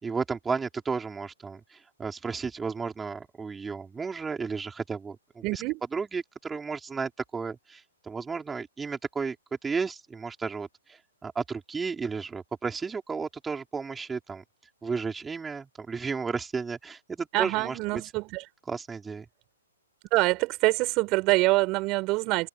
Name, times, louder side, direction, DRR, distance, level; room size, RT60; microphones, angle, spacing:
voice 1, 0.0-5.6 5.9-9.4 9.6-14.4 14.8-18.0 18.7-19.3, right 5 dB, 10° right, 4.4 m, -33 dB
voice 2, 5.4-5.8 17.3-18.4 20.1-22.5, right 23 dB, 35° right, 4.9 m, -25 dB
open air
hypercardioid pair, 130°, 0 cm